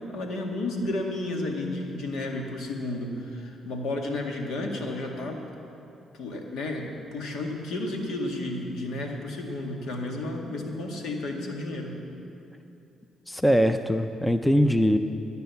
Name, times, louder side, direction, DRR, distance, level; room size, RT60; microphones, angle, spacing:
voice 1, 0.0-5.5 6.1-11.9, left 2 dB, 75° left, 2 dB, 1.9 m, -32 dB
voice 2, 13.3-15.0, equal, 10° left, 8 dB, 0.6 m, -22 dB
12.5 x 9.5 x 6.9 m, 2.7 s
supercardioid pair, 65°, 0 cm